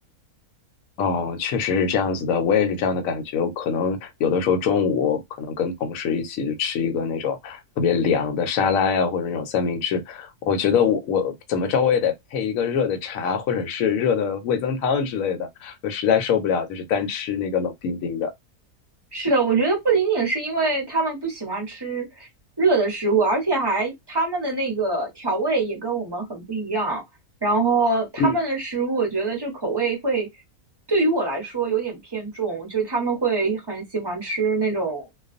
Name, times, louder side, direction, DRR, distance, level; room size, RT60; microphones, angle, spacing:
voice 1, 1.0-18.3 28.2-28.4, left 6 dB, 70° left, 1.0 m, -23 dB
voice 2, 19.1-22.3 22.6-27.0 27.4-30.3 30.9-35.1, right 3 dB, 25° right, 0.6 m, -24 dB
2.4 x 2.2 x 2.4 m
omnidirectional pair, 1.6 m